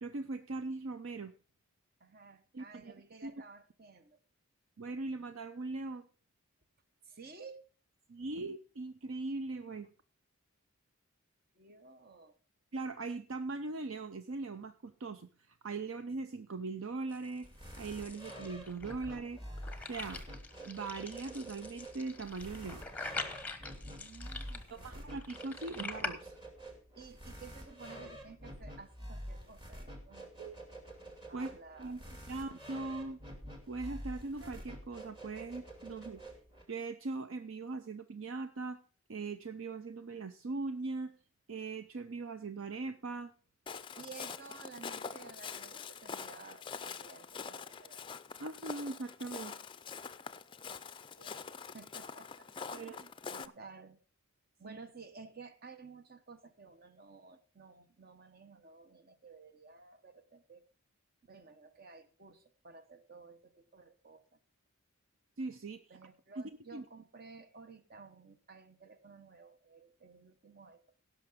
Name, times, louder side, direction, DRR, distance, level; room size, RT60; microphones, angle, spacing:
voice 1, 0.0-1.3 2.5-2.9 3.2-3.3 4.8-6.1 8.1-9.9 12.7-17.5 17.8-19.4 19.9-20.3 20.6-22.8 24.7-26.4 30.4-30.6 31.3-31.5 31.8-33.2 33.7-36.2 36.7-38.8 39.1-41.1 41.5-43.3 48.4-49.6 52.7-53.0 53.4-53.5 54.6-54.8 65.4-65.8 66.4-66.5 66.7-66.8, right 3 dB, 65° right, 10 dB, 0.6 m, -40 dB
voice 2, 2.0-4.2 7.0-7.6 8.2-8.4 11.5-12.4 23.7-25.0 26.9-30.6 31.3-32.5 44.0-48.0 51.2-51.4 51.7-52.5 52.7-54.0 54.6-60.6 61.3-64.4 65.9-70.8, right 4 dB, 45° right, 10 dB, 1.1 m, -54 dB
sound 1, 17.1-26.1, left 3 dB, 5° left, 1.0 m, -45 dB
sound 2, 17.4-36.6, equal, 20° right, 2.5 m, -48 dB
Walk footsteps, 43.7-53.5, left 6 dB, 25° left, 0.4 m, -45 dB
17.0 x 5.8 x 5.1 m, 0.39 s
head